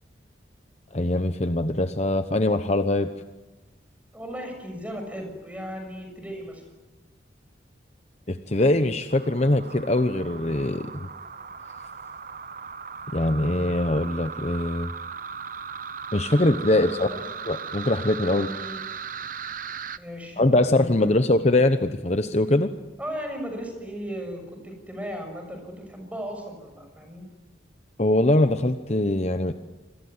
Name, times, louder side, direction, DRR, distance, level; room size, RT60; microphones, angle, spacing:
voice 1, 0.9-3.1 8.3-11.1 13.1-14.9 16.1-17.1 17.5-18.5 20.4-22.7 28.0-29.5, left 1 dB, 35° left, 9 dB, 0.9 m, -22 dB
voice 2, 4.1-6.6 16.7-17.3 18.3-18.8 20.0-21.1 23.0-27.3, equal, 10° right, 4 dB, 6.9 m, -37 dB
sound 1, 9.1-20.0, right 6 dB, 45° right, 0.8 m, -37 dB
27.5 x 22.0 x 9.6 m, 1.2 s
head